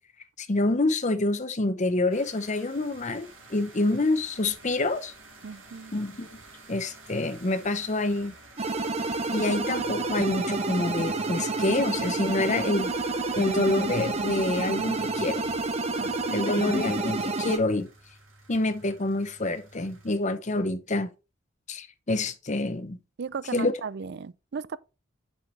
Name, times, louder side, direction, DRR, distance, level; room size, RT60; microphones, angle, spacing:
voice 1, 0.4-5.1 5.9-6.4 6.7-8.3 9.3-12.9 13.4-15.5 16.3-17.9 18.5-21.1 21.7-23.0 23.5-23.7, left 2 dB, 35° left, 0.8 m, -27 dB
sound 1, 2.1-20.2, right 2 dB, 75° right, 2.8 m, -50 dB
voice 2, 5.4-5.9 16.0-16.5 23.2-24.8, right 5 dB, 55° right, 0.4 m, -36 dB
sound 2, 8.6-17.6, right 3 dB, 30° right, 0.9 m, -29 dB
7.2 x 6.6 x 3.2 m
head